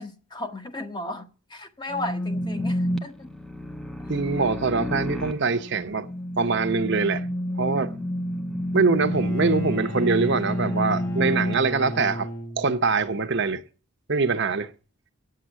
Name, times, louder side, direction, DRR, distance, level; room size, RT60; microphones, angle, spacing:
voice 1, 0.0-3.3 4.0-4.1, left 1 dB, 20° left, 0.9 m, -35 dB
sound 1, 1.9-11.5, left 1 dB, ahead, 0.6 m, -29 dB
voice 2, 4.1-6.1 6.4-7.3 7.6-8.0 8.7-12.3 12.6-13.6 14.1-14.7, right 4 dB, 50° right, 0.8 m, -23 dB
Bowed string instrument, 8.9-13.0, left 1 dB, 65° left, 2.7 m, -35 dB
9.2 x 7.6 x 8.0 m
head